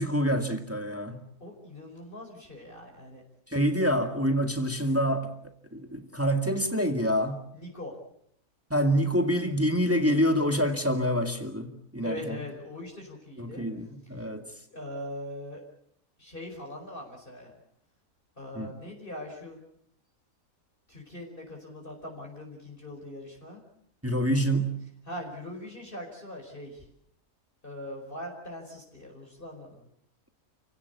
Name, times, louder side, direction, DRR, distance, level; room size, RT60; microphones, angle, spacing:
voice 1, 0.0-1.2 3.5-5.3 5.7-7.4 8.7-12.4 13.4-14.4 18.5-18.7 24.0-24.8, equal, 10° right, 2.0 m, -26 dB
voice 2, 1.4-3.2 7.5-7.9 12.0-13.7 14.0-14.3 14.7-15.6 16.2-17.5 18.4-19.6 20.9-23.6 25.1-26.9 27.6-29.8, left 1 dB, 35° left, 5.3 m, -41 dB
29.5 x 17.0 x 8.2 m
omnidirectional pair, 1.6 m